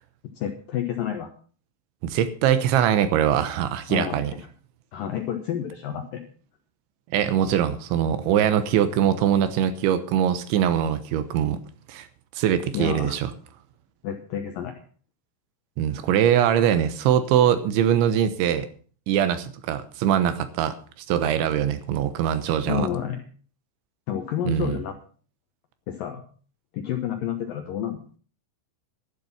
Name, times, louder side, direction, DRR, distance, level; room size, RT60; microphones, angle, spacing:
voice 1, 0.2-1.3 3.9-4.2 4.9-6.2 12.7-13.2 14.0-14.8 22.7-23.2 24.1-25.0 25.9-26.2 26.7-28.0, left 9 dB, 75° left, 5 dB, 2.1 m, -29 dB
voice 2, 2.0-4.3 7.1-11.6 11.9-12.1 12.4-13.3 15.8-18.7 19.1-20.8 21.1-22.9 24.5-24.8, right 9 dB, 75° right, 11 dB, 3.3 m, -22 dB
12.0 x 11.5 x 5.9 m, 0.42 s
omnidirectional pair, 5.6 m